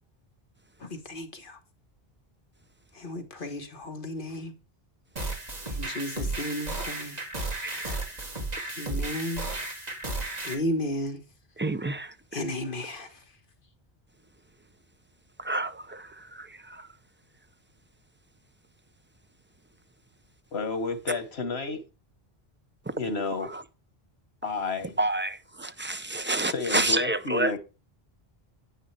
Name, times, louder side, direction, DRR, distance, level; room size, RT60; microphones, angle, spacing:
voice 1, 0.8-1.6 2.9-4.5 5.7-7.2 8.8-9.5 10.4-11.2 12.3-13.2, left 1 dB, 55° left, 1.6 m, -34 dB
sound 1, 5.2-10.5, right 2 dB, 40° right, 2.1 m, -33 dB
voice 2, 11.6-12.1 15.5-15.7 25.0-25.4 25.6-27.5, right 2 dB, 15° right, 0.5 m, -27 dB
voice 3, 20.5-21.8 23.0-23.5 24.4-25.0 26.5-27.6, left 4 dB, 90° left, 1.7 m, -31 dB
9.9 x 9.0 x 3.3 m
omnidirectional pair, 1.0 m